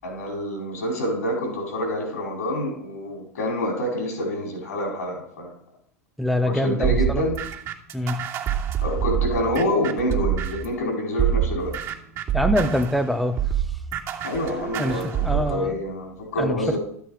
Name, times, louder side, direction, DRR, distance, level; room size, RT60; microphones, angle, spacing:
voice 1, 0.0-5.5 6.4-7.3 8.8-11.7 14.2-16.8, left 1 dB, 75° left, 0 dB, 4.9 m, -27 dB
voice 2, 6.2-7.2 7.9-8.3 12.3-13.8 14.8-15.8 16.4-16.8, left 1 dB, ahead, 7 dB, 0.9 m, -25 dB
sound 1, 6.8-10.8 11.2-15.6, right 9 dB, 35° right, 2.4 m, -26 dB
12.5 x 8.1 x 4.9 m, 0.66 s
hypercardioid pair, 90°, 8 cm